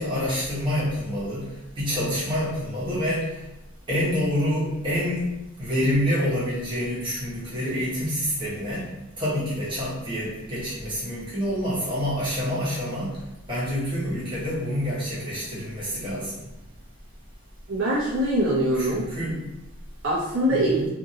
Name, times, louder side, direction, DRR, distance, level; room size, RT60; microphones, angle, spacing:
voice 1, 0.0-1.5 1.8-3.3 3.9-5.3 5.6-8.8 9.2-13.1 13.5-16.3 18.8-19.4 20.5-20.9, equal, 20° right, -9 dB, 1.0 m, -27 dB
voice 2, 17.7-19.0 20.0-20.8, right 1 dB, 60° right, -6 dB, 0.6 m, -23 dB
2.6 x 2.6 x 2.7 m, 0.93 s
head